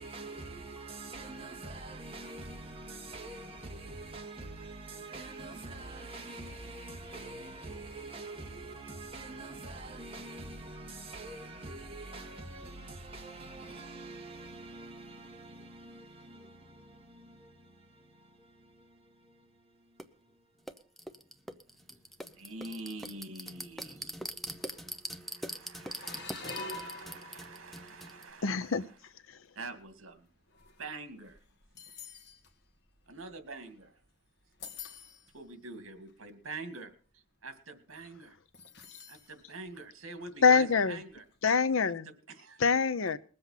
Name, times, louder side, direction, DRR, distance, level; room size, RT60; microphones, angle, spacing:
voice 1, 0.0-21.7, right 2 dB, 25° right, 2.1 m, -45 dB
sound 1, 20.0-20.1 20.7-28.3, equal, ahead, 0.8 m, -42 dB
voice 2, 22.2-24.6 25.1-28.9 29.6-30.3 30.8-31.4 33.1-33.9 35.3-36.9 37.4-38.4 39.1-41.2 41.8-42.6, right 3 dB, 80° right, 2.2 m, -45 dB
sound 2, 22.5-22.9 23.3-23.5 24.2-24.3 24.5-25.1 25.8-28.0 28.6-28.9 29.6-34.1 34.4-35.4 36.1-36.2 36.4-36.8 38.5-39.3 39.7-39.8 41.1-41.2, left 3 dB, 55° left, 1.8 m, -47 dB
voice 3, 28.4-28.8 40.4-41.0 41.4-42.1 42.6-43.2, left 5 dB, 75° left, 0.7 m, -25 dB
20.5 x 7.9 x 5.7 m
head